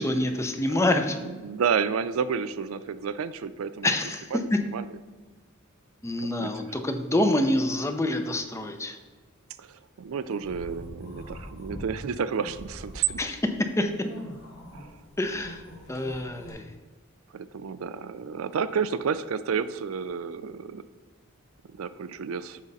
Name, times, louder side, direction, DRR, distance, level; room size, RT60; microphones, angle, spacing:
voice 1, 0.0-1.2 3.8-4.6 6.0-9.0 13.2-13.9 15.2-15.6 15.9-16.6, left 1 dB, 15° left, 6 dB, 0.5 m, -26 dB
voice 2, 1.2-3.9 4.3-4.9 6.4-6.7 9.6-13.3 14.7-14.9 17.3-20.8 21.7-22.6, right 6 dB, 85° right, 14 dB, 0.4 m, -31 dB
sound 1, 10.3-11.9 12.2-16.5, equal, 85° left, 2.0 m, -43 dB
7.3 x 5.2 x 4.1 m, 1.3 s
head